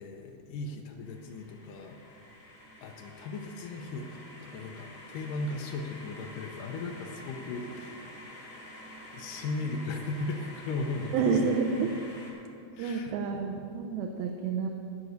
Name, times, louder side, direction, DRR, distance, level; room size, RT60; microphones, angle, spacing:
voice 1, 0.0-2.1 2.8-8.1 9.1-11.6 12.8-13.1, left 3 dB, 75° left, 3 dB, 2.1 m, -37 dB
sound 1, 1.0-12.3, left 1 dB, 50° left, 3.3 m, -48 dB
voice 2, 11.1-11.9 12.8-14.7, right 5 dB, 80° right, 3 dB, 2.5 m, -29 dB
13.0 x 5.3 x 8.1 m, 2.4 s
omnidirectional pair, 4.5 m